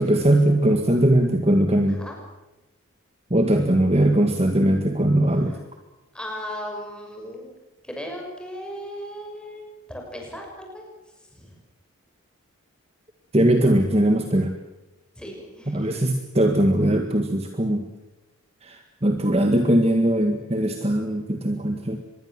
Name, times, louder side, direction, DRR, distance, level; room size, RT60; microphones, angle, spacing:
voice 1, 0.0-2.0 3.3-5.6 13.3-14.6 15.7-17.9 18.6-22.0, right 1 dB, 30° right, 5 dB, 1.8 m, -20 dB
voice 2, 6.1-7.6 7.8-10.8 11.3-11.5 15.2-15.9, equal, 5° left, 1 dB, 6.1 m, -36 dB
25.5 x 21.5 x 7.6 m, 1.0 s
head